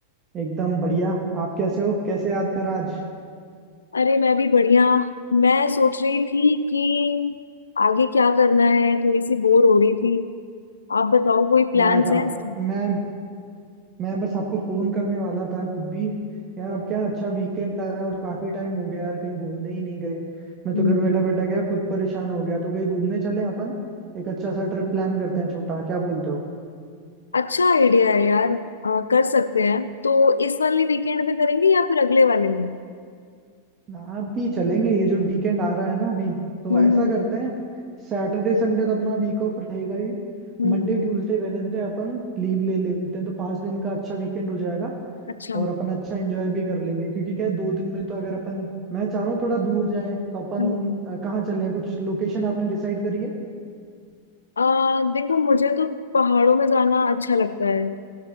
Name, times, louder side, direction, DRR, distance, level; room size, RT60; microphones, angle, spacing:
voice 1, 0.3-3.0 11.7-12.2 12.6-13.0 14.0-16.1 16.6-20.2 20.6-23.8 24.1-26.4 33.9-36.4 36.6-37.6 38.1-40.2 40.6-44.9 45.5-53.3, right 3 dB, 30° right, 0 dB, 1.4 m, -26 dB
voice 2, 3.9-7.3 7.8-10.3 10.9-12.5 20.7-21.2 27.3-32.7 36.7-37.1 40.6-41.0 45.4-45.7 50.6-51.0 54.6-58.0, left 4 dB, 75° left, 12 dB, 0.4 m, -19 dB
19.5 x 6.6 x 2.9 m, 2.1 s
figure-of-eight pair, 90°, 0 cm